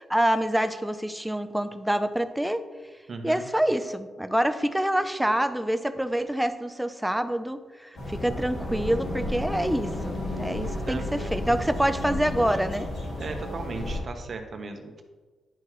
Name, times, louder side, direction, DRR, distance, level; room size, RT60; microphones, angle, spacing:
voice 1, 0.0-2.6 3.2-12.9, right 1 dB, 5° right, 10 dB, 0.5 m, -26 dB
voice 2, 3.1-3.4 8.3-8.4 10.9-11.4 13.2-15.0, right 3 dB, 50° right, 4 dB, 1.1 m, -36 dB
sound 1, 7.9-14.0, left 1 dB, 80° left, 2.6 m, -32 dB
10.5 x 5.8 x 3.1 m, 1.4 s
cardioid pair, 95°, 0 cm